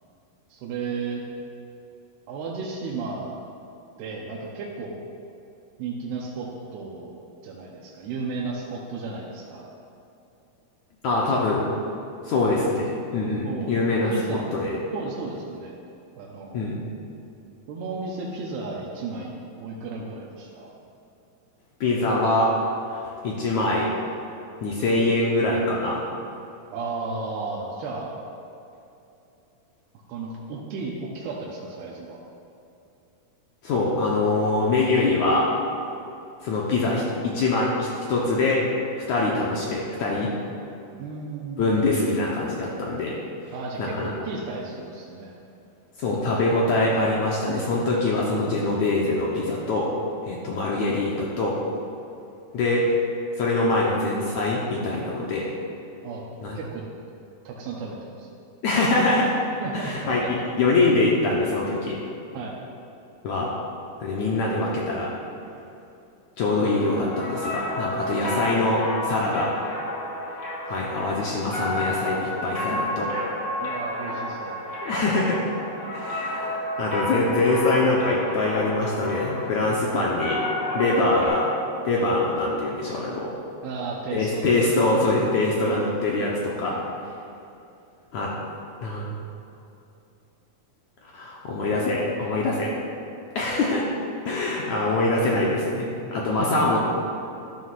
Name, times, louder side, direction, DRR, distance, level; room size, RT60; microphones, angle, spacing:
voice 1, 0.5-1.2 2.3-3.4 4.0-4.9 5.8-9.7 13.4-13.7 14.1-14.5 14.9-15.8 16.2-16.6 17.7-20.7 26.7-28.2 30.1-32.2 41.0-41.8 43.5-45.3 56.0-56.2 56.5-56.8 57.4-58.3 59.6-60.3 62.3-62.6 73.6-74.6 83.6-84.8 86.6-86.9 96.2-96.6, right 4 dB, 90° right, -3 dB, 2.9 m, -34 dB
voice 2, 11.0-11.6 12.2-14.8 16.5-16.8 21.8-22.5 23.2-23.9 24.6-26.0 33.6-35.5 36.4-38.6 39.1-40.3 41.6-43.2 43.8-44.1 46.0-49.9 50.2-51.6 52.5-52.9 53.4-55.5 56.4-56.6 58.6-59.3 59.7-62.0 63.2-63.5 64.0-65.1 66.4-69.5 70.7-73.1 74.8-75.4 75.9-80.4 80.7-81.5 81.8-83.3 84.1-86.8 88.1-88.3 88.8-89.1 91.1-92.7 93.3-93.9 94.2-96.8, left 2 dB, 70° left, -4 dB, 1.8 m, -24 dB
sound 1, 66.6-81.3, left 1 dB, 30° left, 1.6 m, -31 dB
12.5 x 12.0 x 2.5 m, 2.8 s
omnidirectional pair, 4.4 m